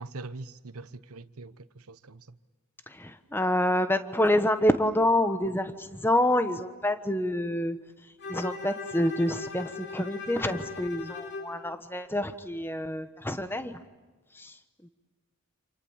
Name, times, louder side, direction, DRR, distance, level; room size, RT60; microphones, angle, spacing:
voice 1, 0.0-2.4, right 3 dB, 90° right, 1.0 m, -43 dB
voice 2, 2.9-7.8 8.3-13.8 14.3-14.9, left 1 dB, 10° left, 1.1 m, -27 dB
Bowed string instrument, 8.2-11.6, left 3 dB, 50° left, 4.6 m, -39 dB
29.0 x 27.5 x 7.3 m
head